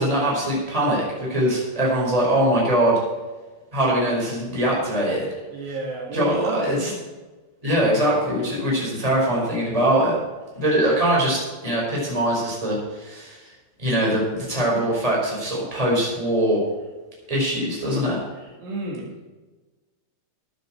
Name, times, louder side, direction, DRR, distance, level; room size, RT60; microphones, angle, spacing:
voice 1, 0.0-3.0 3.7-5.2 6.1-6.9 7.6-10.1 10.5-13.4 13.8-16.6 17.3-18.2, right 1 dB, 10° right, -4 dB, 4.5 m, -22 dB
voice 2, 5.5-7.0 18.6-19.1, right 2 dB, 65° right, -1 dB, 3.8 m, -30 dB
15.5 x 10.0 x 4.4 m, 1.2 s
omnidirectional pair, 5.4 m